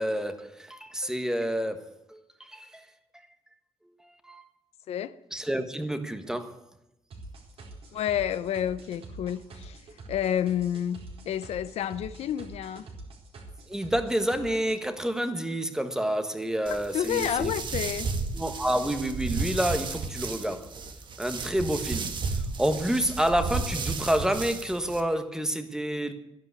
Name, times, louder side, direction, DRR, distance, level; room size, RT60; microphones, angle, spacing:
voice 1, 0.0-1.8 2.1-2.8 4.2-4.4 5.3-6.6 13.7-17.5 18.3-20.7 21.2-26.1, right 1 dB, 5° right, 1.4 m, -29 dB
sound 1, 7.1-14.8, right 3 dB, 65° right, 4.5 m, -46 dB
voice 2, 7.9-9.8 10.1-11.0 11.2-12.8 16.7-18.1, left 10 dB, 75° left, 0.7 m, -29 dB
sound 2, 16.7-25.0, right 4 dB, 45° right, 1.7 m, -33 dB
12.5 x 11.0 x 8.2 m
cardioid pair, 125°, 11 cm